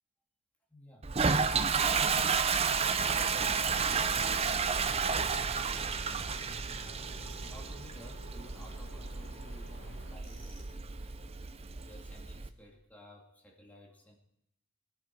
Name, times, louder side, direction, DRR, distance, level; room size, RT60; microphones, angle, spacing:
voice 1, 0.7-1.1 1.8-5.1 6.8-11.3 11.8-14.2, left 1 dB, 10° left, -1 dB, 2.4 m, -53 dB
Toilet flush, 1.0-12.5, right 5 dB, 30° right, 0.6 m, -32 dB
sound 1, 3.1-10.2, left 2 dB, 75° left, 1.1 m, -55 dB
Tools, 7.1-7.6 10.2-10.8, right 2 dB, 75° right, 4.0 m, -57 dB
22.0 x 10.0 x 4.6 m, 0.75 s
head